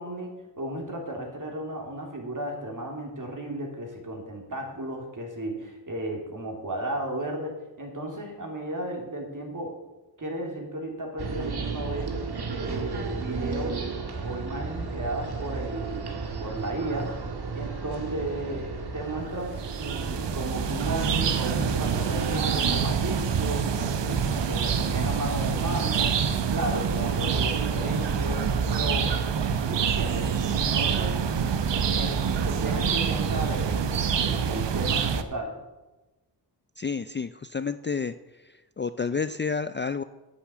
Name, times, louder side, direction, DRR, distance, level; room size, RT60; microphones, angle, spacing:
voice 1, 0.0-9.8 10.2-12.2 12.5-13.8 14.2-16.1 16.4-17.2 17.5-26.2 26.5-29.2 29.6-31.2 31.6-35.6, right 1 dB, 45° right, 1 dB, 3.2 m, -34 dB
sound 1, 11.2-23.0, right 4 dB, 60° right, 1.6 m, -34 dB
sound 2, 19.5-35.2, right 7 dB, 75° right, 0.9 m, -26 dB
voice 2, 36.8-38.1 38.8-40.0, left 5 dB, 25° left, 12 dB, 0.4 m, -29 dB
9.5 x 7.1 x 8.5 m, 1.1 s
cardioid pair, 65°, 43 cm